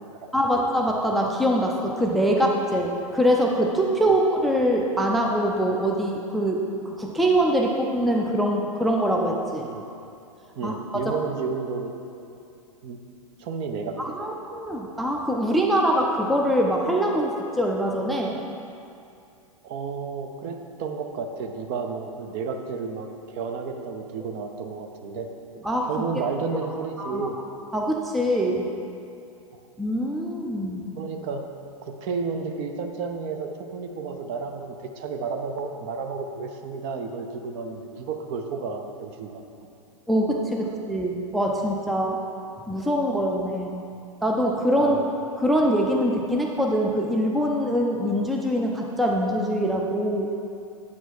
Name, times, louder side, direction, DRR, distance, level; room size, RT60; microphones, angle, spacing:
voice 1, 0.3-6.6 7.0-9.6 10.6-10.8 11.1-11.2 14.0-18.4 25.6-25.9 27.0-27.3 27.7-28.7 29.8-30.9 40.1-42.2 42.7-43.8 44.2-45.0 45.4-50.3, equal, ahead, -1 dB, 0.4 m, -23 dB
voice 2, 10.6-11.9 12.8-13.0 13.4-14.3 19.6-25.3 25.9-27.4 31.0-31.4 31.8-39.4 44.8-45.1, right 5 dB, 40° right, 5 dB, 0.7 m, -32 dB
8.4 x 4.5 x 4.3 m, 2.6 s
figure-of-eight pair, 105°, 18 cm